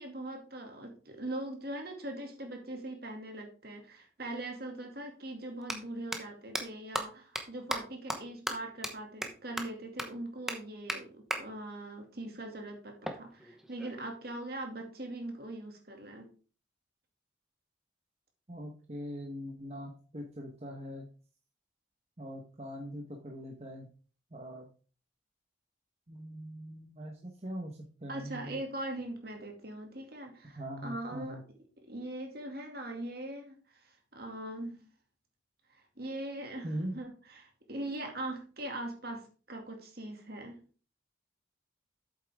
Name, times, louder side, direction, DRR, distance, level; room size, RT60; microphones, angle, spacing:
voice 1, 0.0-16.3 28.1-31.4 31.8-34.8 35.7-40.6, right 1 dB, 55° right, 3 dB, 2.4 m, -41 dB
sound 1, 4.4-4.5 5.5-5.7 6.1-6.2 6.5-6.6 6.9-7.0 7.4-7.5 7.7-7.8 8.1-8.2 8.5-8.6 8.8-8.9 9.2-9.3 9.6-9.7 10.0-10.1 10.5-10.6 10.9-11.0 11.3-11.4 13.0-14.1, right 1 dB, ahead, 0.9 m, -34 dB
voice 2, 18.5-21.1 22.2-23.9 24.3-24.7 26.1-28.6 30.5-31.4 36.6-36.9, equal, 35° right, 0 dB, 1.2 m, -41 dB
8.3 x 7.7 x 3.6 m, 0.38 s
head